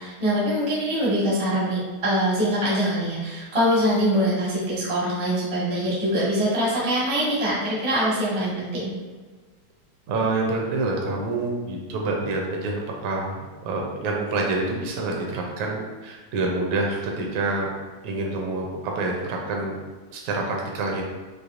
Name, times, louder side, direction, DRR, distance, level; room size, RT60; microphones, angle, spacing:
voice 1, 0.0-8.9, equal, 40° right, -7 dB, 0.4 m, -23 dB
voice 2, 10.1-17.7 18.0-19.8 20.1-21.0, right 2 dB, 75° right, 0 dB, 1.9 m, -27 dB
6.4 x 2.7 x 2.5 m, 1.4 s
omnidirectional pair, 3.5 m